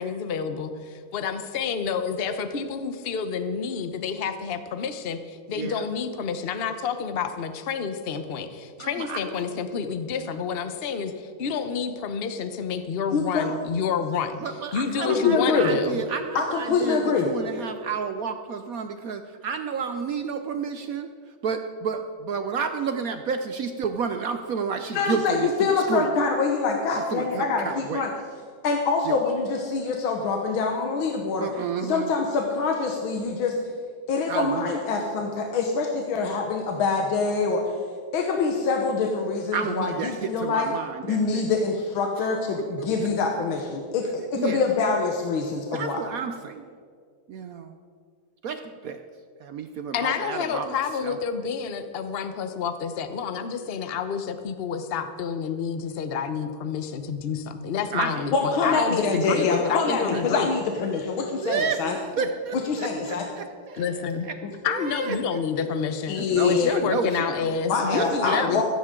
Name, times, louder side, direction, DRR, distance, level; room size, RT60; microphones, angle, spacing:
voice 1, 0.0-14.4 14.7-16.0 49.9-60.5 63.8-64.3 64.6-66.2 66.4-68.6, left 6 dB, 65° left, 9 dB, 0.6 m, -29 dB
voice 2, 5.5-5.9 8.8-9.5 14.4-21.1 21.4-26.1 26.9-28.1 29.0-29.2 31.4-32.2 34.3-34.8 39.5-41.5 42.2-43.1 44.2-44.6 45.7-46.8 47.3-47.8 48.4-49.0 49.4-51.2 57.9-58.3 58.6-60.2 61.4-64.4 64.7-65.7 66.2-67.6 67.9-68.6, right 6 dB, 75° right, 8 dB, 0.8 m, -31 dB
voice 3, 13.1-13.6 15.1-15.7 16.4-17.3 24.9-28.1 28.6-31.5 31.9-33.6 34.1-37.7 38.1-40.7 41.1-46.0 58.3-62.0 62.7-63.3 66.1-66.7 67.7-68.6, left 4 dB, 80° left, 2 dB, 1.9 m, -25 dB
15.5 x 14.5 x 3.7 m, 2.1 s
omnidirectional pair, 2.2 m